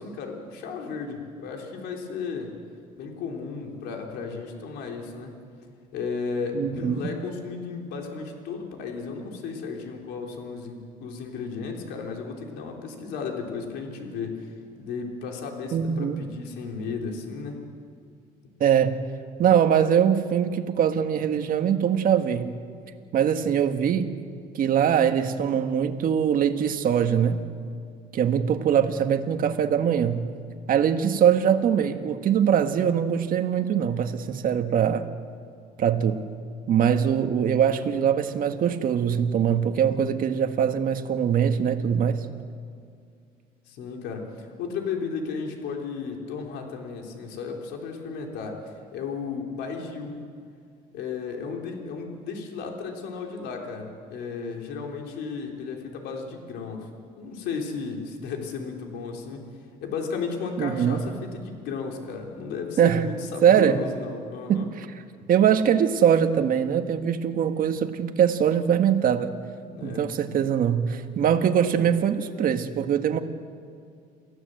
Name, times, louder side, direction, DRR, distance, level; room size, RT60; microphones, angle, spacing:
voice 1, 0.0-2.5 3.0-5.4 5.9-14.5 14.8-17.6 43.7-50.2 50.9-56.9 57.2-59.4 59.8-64.7 69.7-70.1, left 5 dB, 85° left, 1 dB, 3.8 m, -34 dB
voice 2, 6.5-7.0 15.7-16.2 18.6-19.0 19.4-22.5 23.1-24.1 24.5-27.5 28.1-30.3 30.7-35.1 35.8-36.3 36.7-42.3 60.6-61.0 62.8-63.1 63.4-63.8 64.5-64.9 65.3-69.4 69.8-73.2, right 8 dB, 55° right, 6 dB, 1.7 m, -22 dB
28.5 x 15.5 x 8.0 m, 2.2 s
cardioid pair, 110°, 17 cm